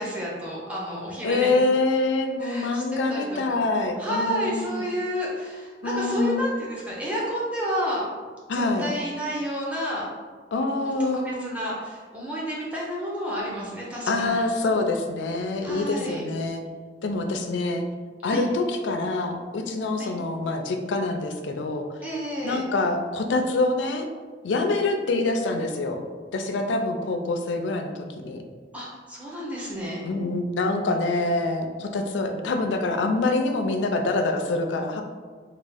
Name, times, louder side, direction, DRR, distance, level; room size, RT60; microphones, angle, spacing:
voice 1, 0.0-1.5 2.4-3.6 4.0-8.0 8.5-10.1 10.8-10.9 11.2-14.4 15.6-16.2 18.2-18.4 20.0-20.1 22.0-22.6 28.7-30.0, equal, 10° right, -6 dB, 0.7 m, -30 dB
voice 2, 1.2-4.7 5.8-6.4 8.5-8.9 10.5-11.5 14.1-16.6 17.0-17.9 18.2-21.9 22.4-24.1 24.4-26.0 26.3-28.4 30.0-35.0, left 2 dB, 85° left, 5 dB, 0.4 m, -25 dB
3.5 x 2.3 x 3.4 m, 1.5 s
head